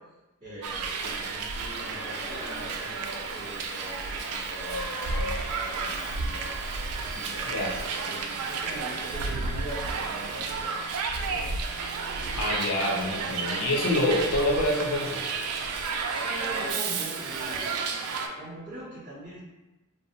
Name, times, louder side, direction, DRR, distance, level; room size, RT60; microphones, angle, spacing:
voice 1, 0.4-10.8 11.1-11.6 16.1-19.5, right 1 dB, 25° right, -14 dB, 0.8 m, -42 dB
Hiss, 0.6-18.3, right 4 dB, 85° right, 0.3 m, -32 dB
sound 1, 1.7-4.0 4.6-7.1 7.4-8.4 9.0-10.3 11.0-11.1, left 1 dB, 10° left, 1.4 m, -42 dB
voice 2, 12.4-15.2, left 1 dB, 80° left, -3 dB, 0.6 m, -26 dB
2.5 x 2.1 x 2.7 m, 1.0 s
head